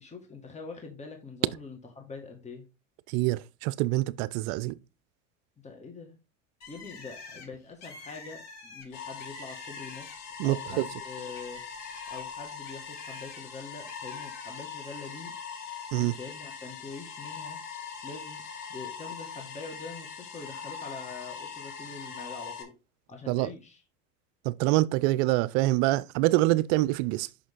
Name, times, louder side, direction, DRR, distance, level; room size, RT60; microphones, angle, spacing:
voice 1, 0.0-2.7 5.6-6.2 6.7-10.1 10.4-11.6 12.1-15.3 16.0-17.6 18.0-18.4 18.7-22.7 23.1-23.8, left 4 dB, 20° left, 1.9 m, -44 dB
voice 2, 3.1-4.8 10.4-10.9 15.9-16.2 23.3-23.5 24.4-27.3, right 18 dB, 60° right, 0.6 m, -25 dB
Bird, 6.6-10.4 10.8-13.4 13.9-14.5, left 3 dB, 45° left, 3.2 m, -48 dB
sound 1, 8.9-22.6, left 6 dB, 65° left, 2.5 m, -41 dB
6.3 x 5.8 x 3.8 m
hypercardioid pair, 95°, 38 cm